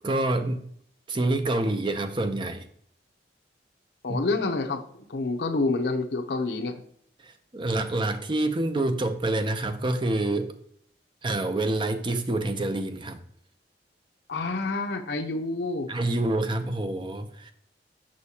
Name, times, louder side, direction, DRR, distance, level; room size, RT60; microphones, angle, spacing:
voice 1, 0.0-0.6 1.1-2.7 4.1-4.2 7.2-10.5 11.2-13.2 15.9-17.5, right 2 dB, 30° right, 8 dB, 0.5 m, -27 dB
voice 2, 4.0-6.7 14.3-15.9, left 3 dB, 70° left, 3 dB, 0.6 m, -28 dB
6.3 x 5.7 x 2.8 m, 0.64 s
head